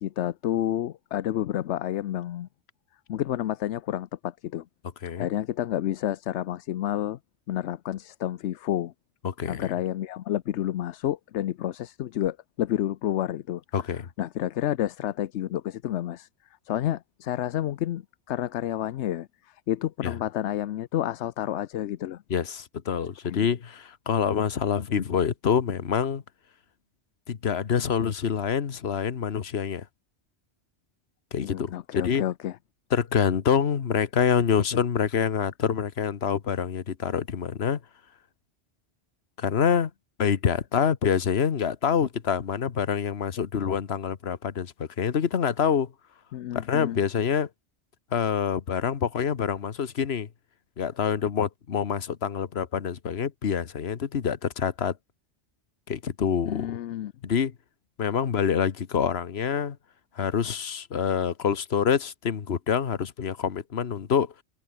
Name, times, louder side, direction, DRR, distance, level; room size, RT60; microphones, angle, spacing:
voice 1, 0.0-2.5 3.1-4.6 5.2-7.2 7.5-8.9 9.5-13.6 13.9-16.3 16.7-22.2 23.3-23.5 31.4-32.6 46.3-47.0 56.4-57.1, left 12 dB, 85° left, 0.9 m, -30 dB
voice 2, 9.2-9.7 13.7-14.1 20.0-20.1 22.3-26.2 27.3-29.8 31.3-32.2 32.9-37.8 39.4-39.9 40.2-45.9 46.5-47.5 48.1-50.3 50.8-54.9 55.9-56.8 57.2-57.5 58.0-59.8 60.2-64.3, left 7 dB, 65° left, 1.4 m, -26 dB
omnidirectional pair, 1.1 m